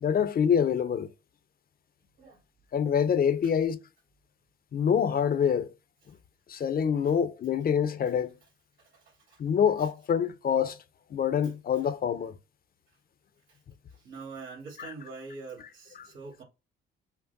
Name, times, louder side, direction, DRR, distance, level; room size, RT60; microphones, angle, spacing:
voice 1, 0.0-1.1 2.7-3.8 4.7-5.7 6.5-8.3 9.4-10.8 11.1-12.3 14.8-14.9 16.0-16.1, left 7 dB, 50° left, 0.7 m, -26 dB
voice 2, 8.8-9.4 9.8-9.9 11.4-11.5 13.5-13.6 13.9-16.4, right 4 dB, 85° right, 2.5 m, -45 dB
5.9 x 2.2 x 4.0 m
cardioid pair, 90°, 20 cm